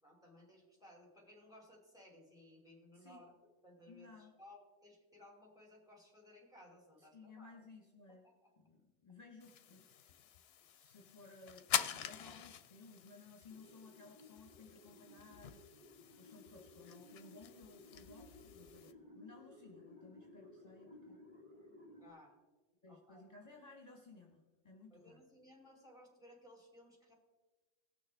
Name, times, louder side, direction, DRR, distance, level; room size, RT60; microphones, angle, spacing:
voice 1, 0.0-3.3 3.6-7.6 8.1-8.2 8.4-8.5 22.0-22.4 22.9-23.2 24.9-27.1, left 1 dB, 5° right, -1 dB, 2.6 m, -60 dB
voice 2, 2.9-3.2 3.9-4.3 7.0-8.3 8.6-10.1 10.6-21.2 22.8-25.2, left 3 dB, 40° left, -1 dB, 1.2 m, -58 dB
sound 1, 9.4-18.9, left 9 dB, 75° left, 0.8 m, -45 dB
sound 2, 13.5-22.1, left 1 dB, 50° right, 1.5 m, -58 dB
18.5 x 6.4 x 3.5 m, 1.3 s
omnidirectional pair, 1.1 m